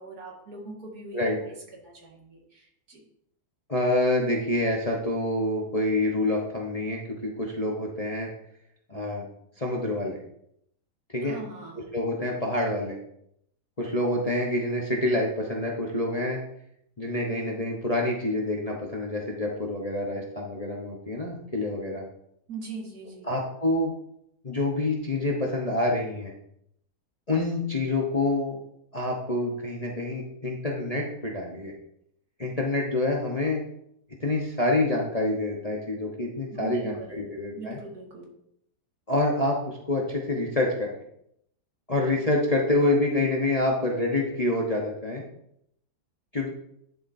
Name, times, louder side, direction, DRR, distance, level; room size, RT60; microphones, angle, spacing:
voice 1, 0.0-3.0 11.2-11.8 22.5-23.3 36.5-37.3 37.5-38.2, right 3 dB, 65° right, -1 dB, 2.4 m, -41 dB
voice 2, 3.7-8.3 8.9-9.2 9.6-10.2 11.1-11.4 11.9-13.0 13.8-16.4 17.0-22.0 23.2-23.9 24.4-26.3 27.3-28.6 28.9-31.7 32.4-33.6 34.2-37.8 39.1-41.0 41.9-45.2 46.3-46.5, left 2 dB, 25° left, -1 dB, 1.0 m, -27 dB
11.0 x 7.2 x 2.7 m, 0.74 s
omnidirectional pair, 1.8 m